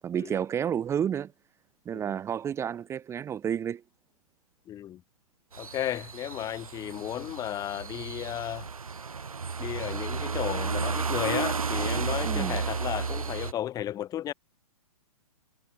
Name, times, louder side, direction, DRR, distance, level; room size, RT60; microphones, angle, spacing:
voice 1, 0.0-1.3 1.9-3.8 12.2-12.6, right 8 dB, 15° right, 2.0 m, -30 dB
voice 2, 4.7-5.0 5.6-8.7 9.6-14.3, left 12 dB, 20° left, 4.5 m, -34 dB
sound 1, 5.5-13.5, right 5 dB, 70° right, 5.6 m, -32 dB
figure-of-eight pair, 120°, 19 cm